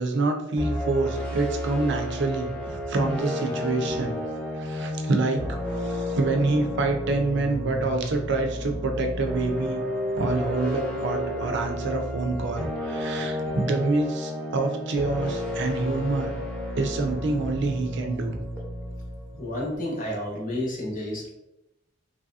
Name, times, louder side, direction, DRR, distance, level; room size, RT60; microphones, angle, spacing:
voice 1, 0.0-4.1 4.5-9.8 10.2-16.3 16.8-18.4, right 3 dB, 65° right, 4 dB, 0.5 m, -27 dB
sound 1, 0.6-19.7, left 1 dB, 5° left, 0.7 m, -31 dB
voice 2, 19.4-21.3, left 1 dB, 45° left, -3 dB, 0.9 m, -30 dB
3.1 x 2.7 x 2.3 m, 0.90 s
head